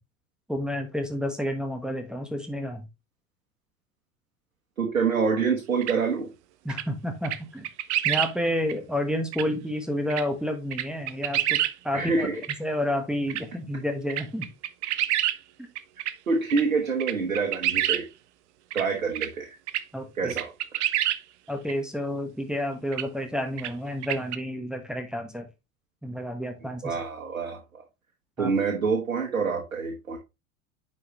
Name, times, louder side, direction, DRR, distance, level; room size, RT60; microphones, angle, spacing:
voice 1, 0.5-2.8 6.6-7.7 8.0-12.3 12.6-14.5 15.6-15.7 19.9-20.3 21.5-25.5 26.0-26.9 28.4-28.5, left 1 dB, ahead, 1.3 m, -30 dB
voice 2, 4.8-6.3 11.9-12.4 16.3-18.0 18.7-19.6 20.2-20.9 26.8-27.8 28.4-30.2, right 5 dB, 80° right, 1.3 m, -26 dB
sound 1, 5.8-5.9 6.7-6.8 7.2-7.4 7.6-8.3 8.7-8.8 9.3-9.4 10.1-10.2 10.7-11.7 12.0-12.1 12.4-12.5 13.3-13.4 14.1-15.4 15.7-16.1 16.5-16.6 17.0-18.0 18.7-18.8 19.1-19.3 19.7-19.8 20.3-21.2 21.7-21.8 22.9-23.0 23.6-23.7 24.0-24.4, right 13 dB, 55° right, 0.6 m, -27 dB
9.5 x 4.2 x 3.0 m
figure-of-eight pair, 80°, 41 cm